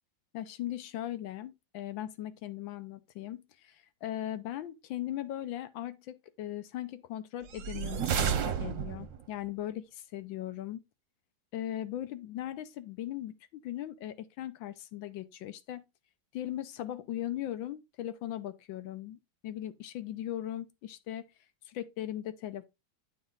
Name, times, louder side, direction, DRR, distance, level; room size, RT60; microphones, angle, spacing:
voice 1, 0.3-10.8 11.5-15.8 16.3-19.2 19.4-21.2 21.7-22.6, left 12 dB, 85° left, 1.5 m, -39 dB
sound 1, 7.5-9.3, right 7 dB, 55° right, 0.9 m, -31 dB
8.7 x 4.1 x 3.8 m
omnidirectional pair, 2.1 m